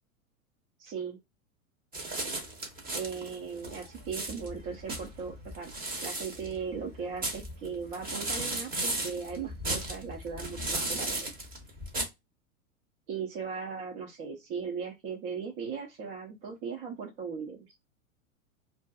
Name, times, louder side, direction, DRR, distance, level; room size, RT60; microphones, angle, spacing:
voice 1, 0.8-1.2 2.9-5.7 6.0-11.3 13.1-17.7, right 6 dB, 45° right, -1 dB, 0.8 m, -38 dB
sound 1, 1.9-12.0, right 2 dB, 20° right, 1.0 m, -36 dB
2.6 x 2.4 x 2.3 m, 0.21 s
figure-of-eight pair, 100°, 43 cm